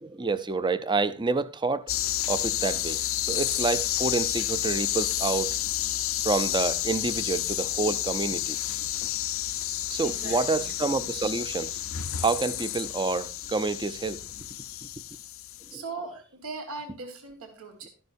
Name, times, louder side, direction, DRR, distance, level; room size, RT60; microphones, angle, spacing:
voice 1, 0.0-1.9 2.3-5.6 6.2-8.6 9.9-11.8 12.2-14.2 15.7-15.8, right 3 dB, 20° right, 0.6 m, -28 dB
sound 1, 1.9-15.8, left 13 dB, 65° left, 0.6 m, -30 dB
voice 2, 10.0-10.8 15.7-17.9, right 3 dB, 75° right, 1.7 m, -39 dB
12.0 x 11.0 x 2.6 m
head